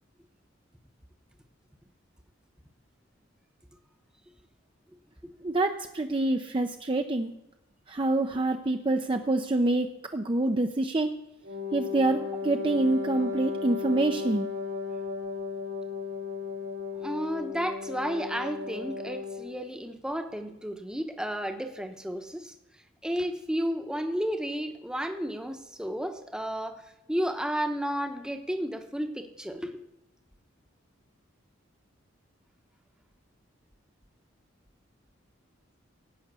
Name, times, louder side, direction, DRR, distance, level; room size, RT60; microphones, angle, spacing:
voice 1, 5.4-7.3 7.9-9.9 10.1-11.1 11.7-14.5, right 2 dB, 25° right, 5 dB, 0.5 m, -26 dB
Wind instrument woodwind instrument, 11.4-19.6, left 5 dB, 80° right, 2.7 m, -35 dB
voice 2, 17.0-22.5 23.0-26.8 27.1-29.8, equal, 5° right, 6 dB, 0.9 m, -32 dB
16.5 x 5.8 x 8.0 m, 0.90 s
head